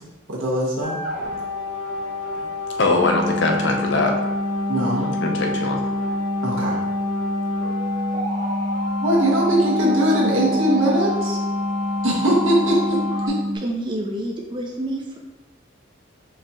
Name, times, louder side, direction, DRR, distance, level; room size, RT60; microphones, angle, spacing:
voice 1, 0.3-1.0 4.7-5.1 6.4-6.8 9.0-11.4 12.0-13.0, right 1 dB, 80° right, -3 dB, 1.2 m, -20 dB
sound 1, 0.8-13.3, left 2 dB, 40° right, 1.0 m, -29 dB
voice 2, 2.8-4.1 5.0-5.8, left 3 dB, 60° left, 2 dB, 0.6 m, -21 dB
sound 2, 3.0-13.6, equal, 25° left, 0.9 m, -27 dB
voice 3, 13.6-15.2, right 1 dB, 25° right, 1 dB, 0.4 m, -28 dB
4.6 x 2.9 x 3.6 m, 1.1 s
head